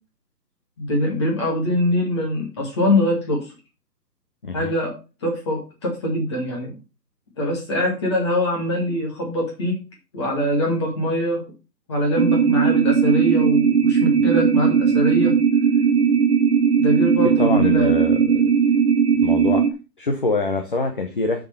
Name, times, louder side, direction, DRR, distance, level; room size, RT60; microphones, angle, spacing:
voice 1, 0.8-3.5 4.5-4.9 5.2-6.8 7.4-9.8 10.1-11.4 11.9-15.3 16.8-18.1, left 1 dB, 15° left, -1 dB, 2.1 m, -23 dB
voice 2, 4.4-4.7 17.4-18.3 19.2-19.6 20.0-21.4, left 3 dB, 30° left, 5 dB, 1.0 m, -24 dB
sound 1, 12.2-19.7, right 6 dB, 40° right, 0.9 m, -18 dB
7.0 x 6.6 x 5.7 m, 0.31 s
hypercardioid pair, 175°, 50 cm